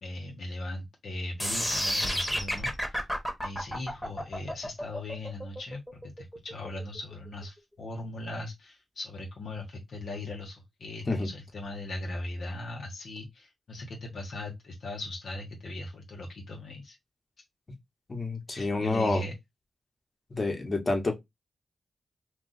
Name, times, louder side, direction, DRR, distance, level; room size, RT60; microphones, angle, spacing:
voice 1, 0.0-3.0 3.4-17.0 18.5-19.3, left 2 dB, 80° left, 0.8 m, -39 dB
sound 1, 1.4-7.4, equal, 5° left, 1.0 m, -31 dB
voice 2, 18.1-19.2 20.3-21.2, left 2 dB, 45° left, 1.0 m, -28 dB
2.4 x 2.3 x 3.8 m
cardioid pair, 60°, 0 cm